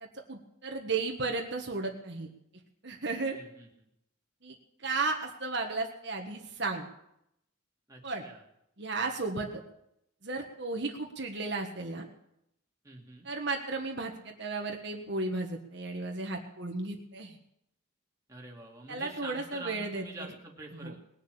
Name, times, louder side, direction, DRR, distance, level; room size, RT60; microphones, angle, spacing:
voice 1, 0.0-2.3 2.8-3.4 4.4-4.6 4.8-6.9 8.0-8.3 8.8-9.6 10.2-12.1 13.2-17.4 18.9-20.3 20.8-21.0, right 3 dB, 60° right, 2 dB, 1.5 m, -34 dB
voice 2, 3.3-3.7 7.9-8.4 12.8-13.3 18.3-21.0, right 2 dB, 15° right, -1 dB, 2.3 m, -46 dB
20.0 x 7.1 x 8.3 m, 0.79 s
head